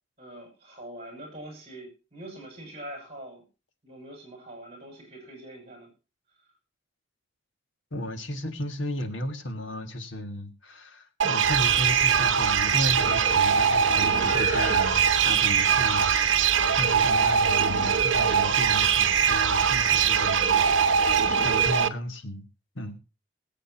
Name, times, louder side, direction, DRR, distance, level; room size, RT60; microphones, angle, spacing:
voice 1, 0.2-3.4 3.8-5.9, right 1 dB, 30° right, 2 dB, 6.7 m, -43 dB
voice 2, 7.9-21.1 21.4-22.5 22.8-23.0, left 1 dB, 65° left, 7 dB, 1.9 m, -34 dB
sound 1, 11.2-21.9, right 7 dB, 65° right, 0.8 m, -22 dB
sound 2, 11.4-21.8, left 1 dB, 40° left, 3.3 m, -36 dB
21.0 x 8.2 x 2.9 m, 0.31 s
head